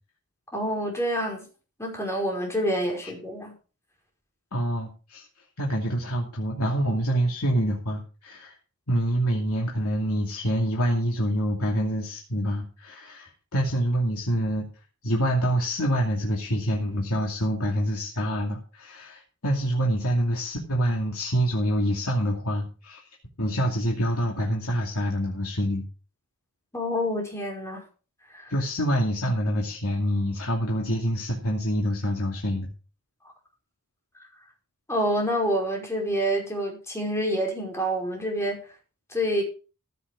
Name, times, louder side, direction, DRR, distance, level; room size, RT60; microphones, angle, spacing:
voice 1, 0.5-1.5 1.8-3.6 26.7-27.8 28.3-28.5 34.9-38.6 39.1-39.4, equal, 15° left, 5.0 m, -27 dB
voice 2, 4.5-5.2 5.6-8.6 8.9-14.7 15.0-23.0 23.4-25.8 28.5-32.7, equal, 85° left, 2.6 m, -26 dB
15.0 x 8.2 x 4.8 m
head